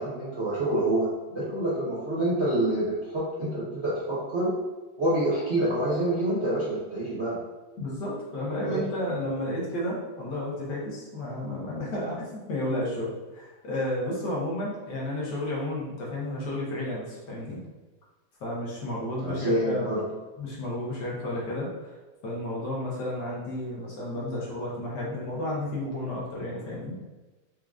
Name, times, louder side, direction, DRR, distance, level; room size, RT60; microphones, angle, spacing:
voice 1, 0.0-4.5 5.0-7.4 8.7-8.8 19.2-20.0, right 1 dB, 55° right, -8 dB, 0.8 m, -27 dB
voice 2, 7.8-17.6 18.4-19.9 20.4-21.9 22.2-27.0, left 1 dB, 65° left, -5 dB, 1.4 m, -32 dB
4.5 x 2.4 x 2.4 m, 1.2 s
omnidirectional pair, 2.2 m